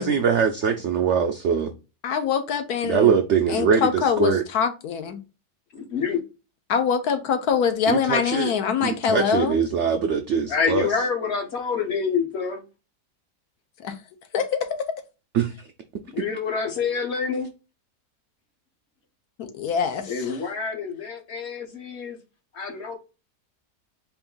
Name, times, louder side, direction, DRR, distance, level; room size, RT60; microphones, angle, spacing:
voice 1, 0.0-1.7 2.8-4.4 7.9-8.5 8.8-10.9 15.3-15.7, right 6 dB, 75° right, 0.6 m, -22 dB
voice 2, 2.0-3.2 3.5-5.2 6.7-9.5 13.8-13.9 14.3-14.9 19.4-20.4, left 7 dB, 75° left, 1.2 m, -24 dB
voice 3, 5.7-6.2 10.5-12.6 16.1-17.5 20.1-22.2 22.5-23.0, left 5 dB, 50° left, 1.0 m, -27 dB
4.6 x 2.5 x 3.7 m
omnidirectional pair, 1.7 m